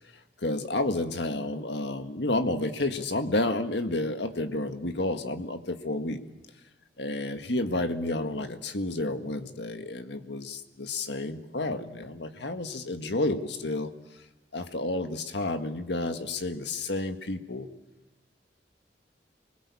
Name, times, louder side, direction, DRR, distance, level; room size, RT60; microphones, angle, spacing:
voice 1, 0.4-6.2 7.0-13.9 14.5-17.7, left 2 dB, 70° left, 7 dB, 1.8 m, -30 dB
27.5 x 21.0 x 8.6 m, 1.0 s
head